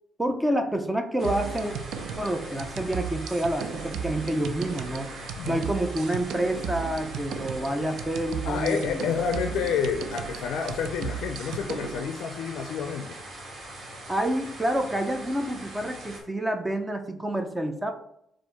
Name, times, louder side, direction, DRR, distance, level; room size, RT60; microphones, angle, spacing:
voice 1, 0.2-1.7 2.2-5.1 5.5-9.0 14.1-17.9, right 1 dB, 10° right, 6 dB, 0.5 m, -28 dB
sound 1, 1.2-16.2, right 1 dB, 50° right, 1.6 m, -42 dB
sound 2, 1.2-12.0, right 7 dB, 80° right, 0.4 m, -36 dB
voice 2, 8.4-13.2, left 6 dB, 80° left, 6 dB, 0.4 m, -29 dB
4.3 x 2.5 x 4.5 m, 0.76 s
cardioid pair, 90°, 0 cm